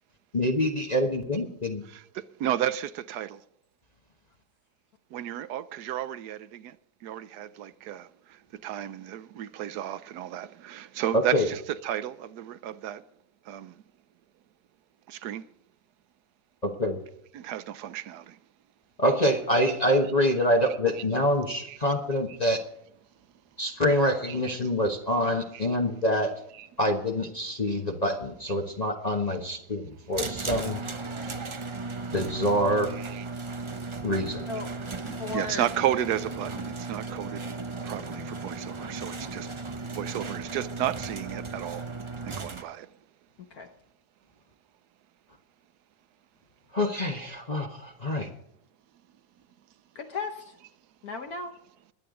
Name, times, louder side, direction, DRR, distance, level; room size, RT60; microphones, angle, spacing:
voice 1, 0.3-1.8 11.1-11.5 16.6-17.0 19.0-22.6 23.6-26.3 26.8-30.8 32.1-32.9 34.0-34.5 46.7-48.3, equal, 25° left, 1.2 m, -26 dB
voice 2, 1.8-3.4 5.1-13.0 13.4-13.8 15.1-15.4 17.3-18.4 21.7-21.8 24.3-24.5 25.5-25.7 26.6-26.7 31.1-31.6 32.9-33.3 35.1-37.5 37.8-39.5 39.9-41.9 42.2-42.9, right 11 dB, 70° right, 1.2 m, -33 dB
sound 1, 30.1-42.6, right 3 dB, 50° right, 0.3 m, -36 dB
voice 3, 35.0-35.6 38.0-38.5 43.5-43.7 49.9-50.5 51.0-51.5, left 3 dB, 60° left, 1.5 m, -36 dB
22.5 x 8.9 x 3.8 m
omnidirectional pair, 1.9 m